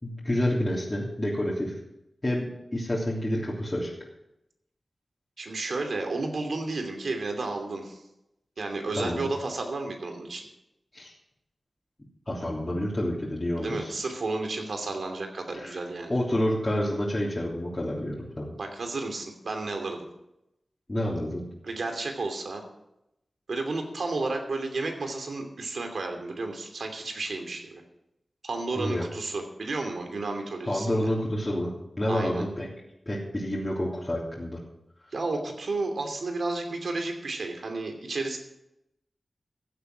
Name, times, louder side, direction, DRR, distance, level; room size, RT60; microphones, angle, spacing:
voice 1, 0.0-1.7 2.2-3.9 8.9-9.3 10.9-11.1 12.3-13.9 15.5-15.8 16.1-18.5 20.9-21.4 28.8-29.1 30.7-32.7 33.0-34.6, left 1 dB, 30° left, -6 dB, 3.3 m, -29 dB
voice 2, 5.4-8.0 8.6-10.4 13.6-16.1 18.5-20.0 21.6-22.6 23.5-27.8 28.4-31.1 32.1-32.4 35.1-38.4, right 3 dB, 75° right, 4 dB, 2.7 m, -32 dB
15.0 x 8.1 x 6.2 m, 0.85 s
cardioid pair, 50°, 0 cm